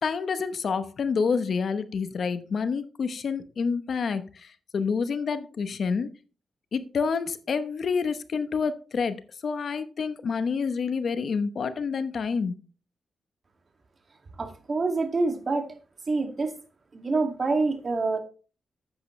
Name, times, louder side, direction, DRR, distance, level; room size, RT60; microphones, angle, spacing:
voice 1, 0.0-6.1 6.7-12.6, left 5 dB, 65° left, 12 dB, 0.9 m, -28 dB
voice 2, 14.4-15.8 16.1-16.5 16.9-18.2, right 3 dB, 45° right, 5 dB, 2.3 m, -26 dB
10.0 x 8.5 x 3.2 m, 0.36 s
cardioid pair, 70°, 0 cm